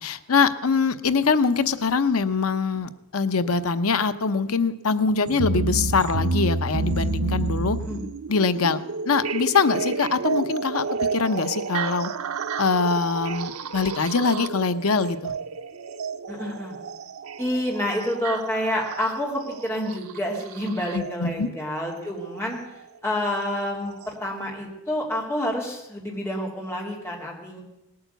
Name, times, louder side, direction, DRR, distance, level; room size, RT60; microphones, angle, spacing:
voice 1, 0.0-7.8 8.3-8.8 9.1-10.9 11.1-12.1 12.6-15.3 20.9-21.5, left 4 dB, 80° left, 11 dB, 0.8 m, -23 dB
sound 1, 5.3-21.2 22.4-22.5 23.3-23.4 24.0-24.1, right 3 dB, 90° right, 0.8 m, -30 dB
voice 2, 16.3-16.7 17.4-22.6 23.0-27.6, left 1 dB, 10° left, -2 dB, 3.0 m, -28 dB
18.5 x 8.7 x 8.2 m, 0.89 s
head